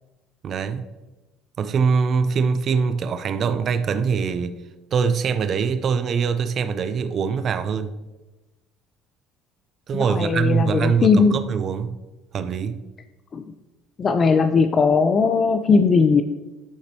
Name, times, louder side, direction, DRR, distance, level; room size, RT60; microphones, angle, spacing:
voice 1, 0.4-0.8 1.6-4.6 4.9-7.9 9.9-12.0 12.3-12.8, right 6 dB, 45° right, 10 dB, 0.4 m, -23 dB
voice 2, 9.9-11.4 13.3-13.4 14.0-16.2, left 5 dB, 35° left, 8 dB, 0.4 m, -18 dB
11.0 x 4.2 x 2.8 m, 1.1 s
supercardioid pair, 105°, 0 cm